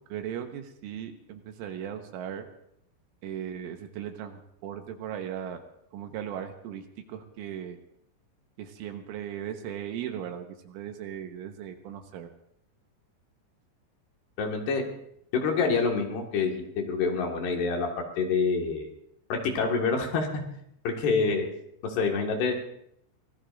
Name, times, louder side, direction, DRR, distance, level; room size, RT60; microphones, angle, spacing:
voice 1, 0.1-2.5 3.2-5.6 5.9-7.8 8.6-12.3, right 9 dB, 80° right, 5 dB, 3.5 m, -37 dB
voice 2, 14.4-14.8 15.3-16.5 16.8-17.9 18.2-18.9 19.3-20.3 20.8-21.5 21.8-22.5, left 4 dB, 60° left, 1 dB, 3.4 m, -26 dB
25.0 x 19.0 x 2.5 m, 0.74 s
omnidirectional pair, 5.9 m